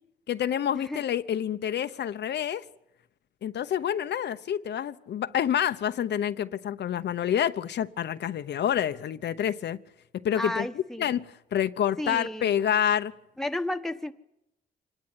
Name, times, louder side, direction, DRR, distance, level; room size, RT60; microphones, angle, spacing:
voice 1, 0.3-2.6 3.4-9.8 10.2-13.1, left 9 dB, 75° left, 0.9 m, -28 dB
voice 2, 10.4-11.1 12.0-12.5 13.4-14.1, left 1 dB, ahead, 1.2 m, -32 dB
25.5 x 19.5 x 9.8 m
cardioid pair, 100°, 18 cm